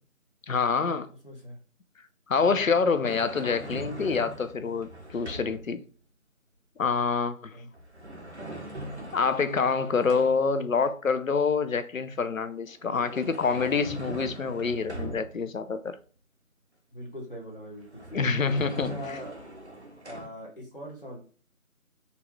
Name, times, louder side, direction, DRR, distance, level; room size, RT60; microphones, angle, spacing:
voice 1, 0.5-1.1 2.3-5.8 6.8-7.5 9.1-16.0 18.1-18.9, left 5 dB, 70° left, 0.5 m, -26 dB
voice 2, 1.2-1.6 7.5-7.7 16.9-18.2 18.7-19.3 20.1-21.2, left 1 dB, 40° left, 0.8 m, -41 dB
sound 1, 3.1-5.8 7.7-10.6 12.7-15.6 17.5-17.6 17.9-20.3, right 1 dB, 50° right, 0.6 m, -41 dB
4.1 x 2.3 x 4.3 m
figure-of-eight pair, 180°, 43 cm